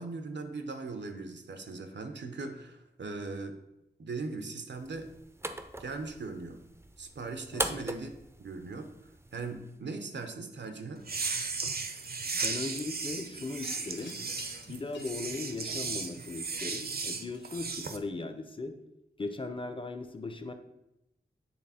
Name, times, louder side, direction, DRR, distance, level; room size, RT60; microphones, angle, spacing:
voice 1, 0.0-3.6 4.0-5.1 5.8-6.6 7.0-8.1 8.4-8.9 9.3-11.1, right 3 dB, 90° right, 6 dB, 0.8 m, -39 dB
sound 1, 4.7-9.8, right 1 dB, 15° right, 0.4 m, -40 dB
voice 2, 7.5-7.8 12.3-14.2 14.7-18.8 19.2-20.5, left 3 dB, 30° left, 8 dB, 0.6 m, -38 dB
sound 2, 11.0-18.0, right 4 dB, 60° right, 0.6 m, -36 dB
Wind chime, 13.6-18.2, left 4 dB, 80° left, 0.7 m, -52 dB
8.6 x 3.4 x 4.2 m, 0.89 s
wide cardioid pair, 95°, 18 cm